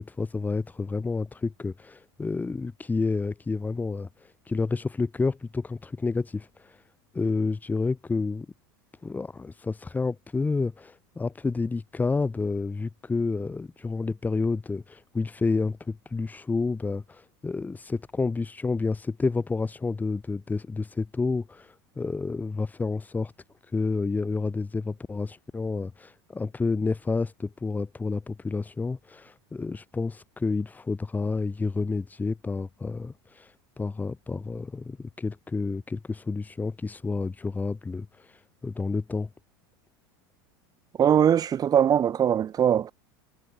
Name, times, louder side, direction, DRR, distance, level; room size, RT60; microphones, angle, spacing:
voice 1, 0.0-4.1 4.5-6.5 7.1-8.5 9.0-21.7 22.0-23.3 23.7-33.5 33.8-38.1 38.6-39.3, left 4 dB, 15° left, 7.9 m, -29 dB
voice 2, 41.0-42.9, right 9 dB, 30° right, 7.8 m, -21 dB
supercardioid pair, 115°, 12 cm